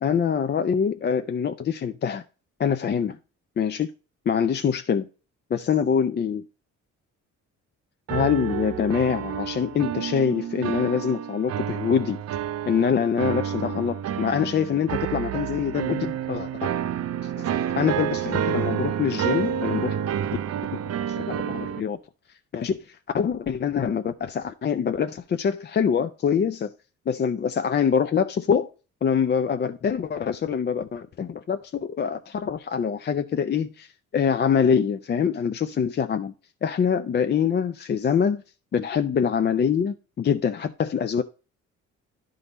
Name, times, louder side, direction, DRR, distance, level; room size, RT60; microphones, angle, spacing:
voice 1, 0.0-2.2 2.6-3.2 3.6-3.9 4.3-5.1 5.5-6.4 8.1-12.2 12.7-16.5 17.2-17.5 17.7-20.0 21.1-22.0 22.5-26.7 27.1-28.7 29.0-36.3 36.6-38.4 38.7-41.2, left 7 dB, 35° left, 0.5 m, -24 dB
sound 1, 8.1-21.8, right 9 dB, 55° right, 0.5 m, -29 dB
11.0 x 3.8 x 4.0 m
cardioid pair, 90°, 30 cm